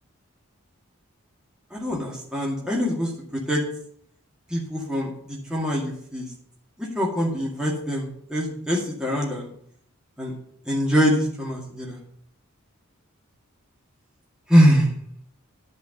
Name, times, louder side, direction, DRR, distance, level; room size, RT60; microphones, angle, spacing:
voice 1, 1.7-3.1 3.5-3.6 4.5-5.1 5.5-6.3 6.9-9.5 10.2-10.3 10.7-12.0 14.5-14.8, equal, 5° right, -3 dB, 2.2 m, -23 dB
10.5 x 5.1 x 7.9 m, 0.64 s
head